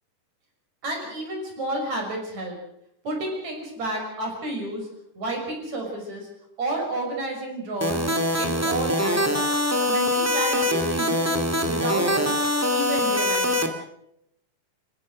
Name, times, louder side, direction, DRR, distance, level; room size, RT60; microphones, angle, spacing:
voice 1, 0.8-2.6 3.0-4.9 5.2-6.3 6.6-8.1 8.4-9.5 9.9-12.4 12.7-13.7, right 1 dB, 60° right, 1 dB, 7.4 m, -31 dB
sound 1, 7.8-13.7, left 1 dB, 5° right, 1.7 m, -23 dB
29.0 x 16.0 x 6.4 m, 0.78 s
omnidirectional pair, 3.6 m